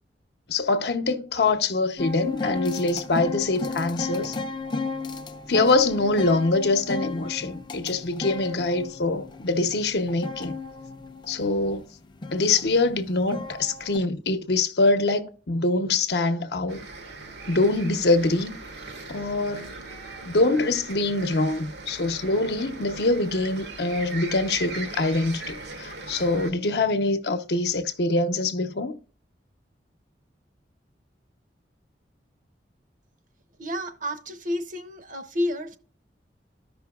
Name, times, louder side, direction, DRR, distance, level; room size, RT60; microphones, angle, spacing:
voice 1, 0.5-4.3 5.5-10.6 11.3-11.9 12.3-16.8 17.5-18.6 19.1-19.8 20.2-29.0, left 2 dB, 65° left, 0.8 m, -24 dB
sound 1, 2.0-14.0, left 4 dB, 25° left, 0.5 m, -34 dB
sound 2, 16.7-26.5, right 3 dB, 75° right, 1.3 m, -39 dB
voice 2, 33.6-35.8, left 1 dB, 45° right, 0.8 m, -30 dB
13.5 x 5.6 x 2.3 m
head